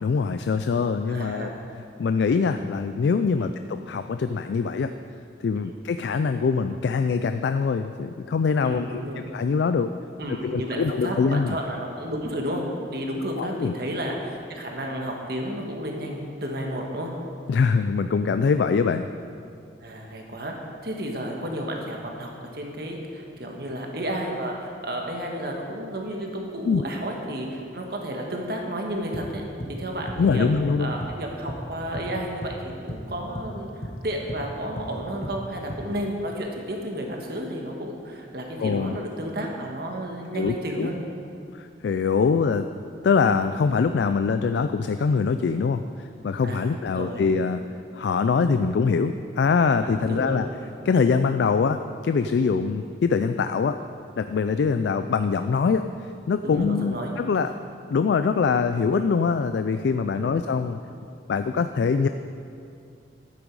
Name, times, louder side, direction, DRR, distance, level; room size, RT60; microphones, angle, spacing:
voice 1, 0.0-1.5 2.0-4.9 5.4-9.0 9.3-9.9 10.4-11.6 13.4-13.7 17.5-19.1 26.7-26.8 30.2-30.9 38.6-39.0 40.3-40.9 41.6-42.7 43.0-47.6 47.9-50.5 50.8-53.8 54.2-55.8 56.3-57.6 57.9-60.8 61.3-62.1, left 5 dB, 65° left, 9 dB, 0.3 m, -23 dB
voice 2, 1.1-1.5 3.4-3.5 5.6-5.7 8.6-9.2 10.2-17.1 19.8-20.5 20.8-29.5 29.8-30.5 30.8-41.0 46.4-47.3 49.8-50.4 56.4-57.1 60.2-60.4, equal, 55° right, 1 dB, 1.5 m, -32 dB
sound 1, 29.1-32.1 32.4-32.6 32.9-35.9, equal, 35° left, 1.1 m, -35 dB
12.0 x 9.0 x 4.7 m, 2.5 s
head